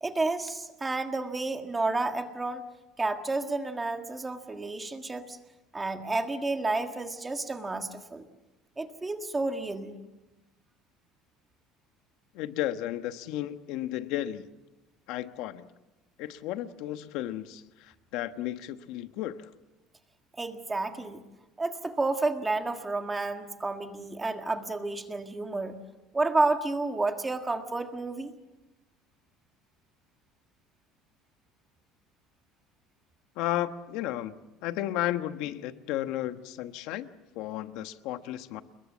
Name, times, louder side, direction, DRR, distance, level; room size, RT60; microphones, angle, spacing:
voice 1, 0.0-2.6 3.0-5.4 5.7-8.2 8.8-10.0 20.4-21.2 21.6-25.8 26.1-28.3, right 3 dB, 10° right, 6 dB, 1.6 m, -30 dB
voice 2, 12.3-14.5 15.1-15.7 16.2-19.5 33.4-34.4 34.6-37.1 37.3-38.6, left 13 dB, 60° left, 10 dB, 1.1 m, -33 dB
29.5 x 21.5 x 7.4 m, 1.0 s
cardioid pair, 180°, 0 cm